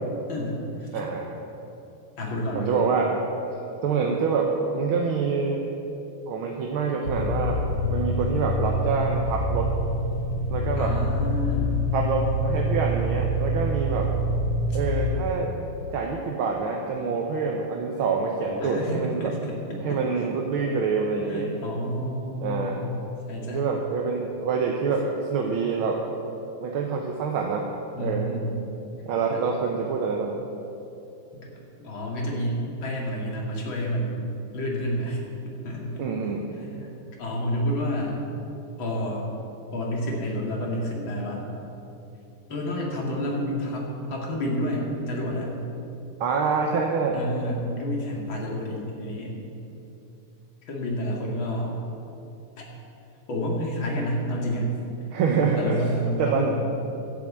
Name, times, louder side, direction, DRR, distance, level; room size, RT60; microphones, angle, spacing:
voice 1, 0.3-0.9 2.2-2.8 10.8-11.8 14.7-14.8 18.5-20.0 21.3-22.9 23.3-23.7 28.0-28.6 29.3-29.4 31.3-31.5 31.8-36.0 36.6-38.2 38.8-39.2 39.7-41.5 42.5-45.6 47.1-49.4 50.7-51.8 53.3-54.7 55.6-56.6, equal, 60° left, -2 dB, 2.9 m, -29 dB
voice 2, 0.9-1.3 2.5-3.1 3.8-5.6 6.3-7.6 7.9-9.7 10.5-10.9 11.9-14.1 14.7-15.5 15.9-19.3 19.8-21.5 22.4-22.8 23.4-26.0 26.6-27.7 28.0-28.3 29.1-30.4 36.0-36.5 46.2-47.2 55.1-55.8 56.2-56.6, right 5 dB, 75° right, 1 dB, 1.7 m, -26 dB
sound 1, 7.0-15.1, equal, 45° left, 2.3 m, -26 dB
12.5 x 7.8 x 8.5 m, 2.9 s
omnidirectional pair, 2.4 m